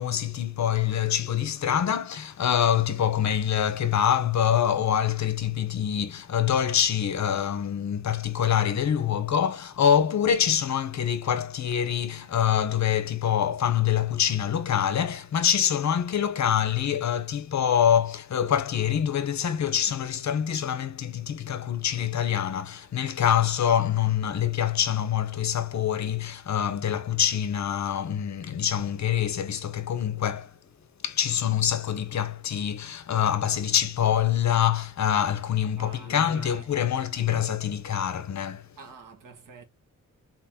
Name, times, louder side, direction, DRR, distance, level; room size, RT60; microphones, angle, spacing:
voice 1, 0.0-30.6 31.0-38.7, left 9 dB, 60° left, 0.8 m, -25 dB
voice 2, 35.8-37.0 38.8-39.6, right 5 dB, 85° right, 1.7 m, -47 dB
4.1 x 3.9 x 2.8 m
wide cardioid pair, 160°, 32 cm